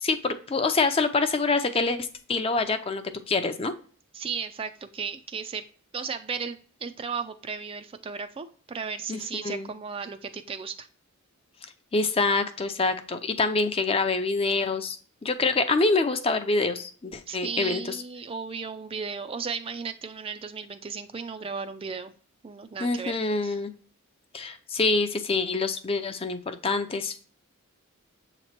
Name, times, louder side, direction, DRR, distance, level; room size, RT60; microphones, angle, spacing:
voice 1, 0.0-3.7 9.1-9.2 9.4-9.7 11.9-15.0 15.2-18.0 22.8-23.7 24.3-27.1, left 3 dB, 25° left, 8 dB, 0.5 m, -26 dB
voice 2, 4.1-5.6 5.9-10.9 17.3-22.1 22.4-23.2 23.4-23.6, right 5 dB, 25° right, 9 dB, 0.3 m, -35 dB
7.4 x 3.0 x 4.3 m, 0.42 s
head